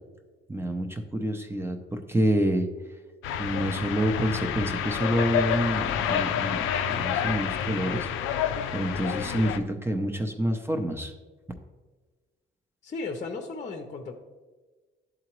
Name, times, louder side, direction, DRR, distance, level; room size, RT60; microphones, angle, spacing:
voice 1, 0.5-2.7 3.4-6.6 6.9-8.1 8.7-11.1, right 1 dB, 10° right, 4 dB, 0.6 m, -27 dB
sound 1, 3.2-9.6, left 8 dB, 90° left, 0.4 m, -28 dB
voice 2, 12.8-14.1, left 3 dB, 35° left, 4 dB, 0.7 m, -35 dB
10.5 x 3.9 x 3.0 m, 1.3 s
cardioid pair, 90°, 20 cm